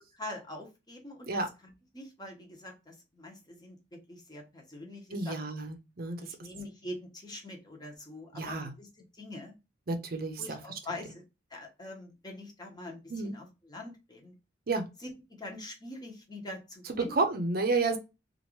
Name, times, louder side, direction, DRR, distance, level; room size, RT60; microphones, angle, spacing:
voice 1, 0.1-3.8 4.1-5.4 6.2-9.5 10.4-11.2 11.5-14.3 15.0-15.1 15.4-17.1, left 1 dB, 20° left, 1 dB, 0.9 m, -44 dB
voice 2, 5.1-6.3 8.3-8.7 9.9-10.8 13.1-13.4 14.7-14.8 17.0-18.0, right 3 dB, 55° right, 6 dB, 0.6 m, -31 dB
2.9 x 2.5 x 3.0 m, 0.26 s
head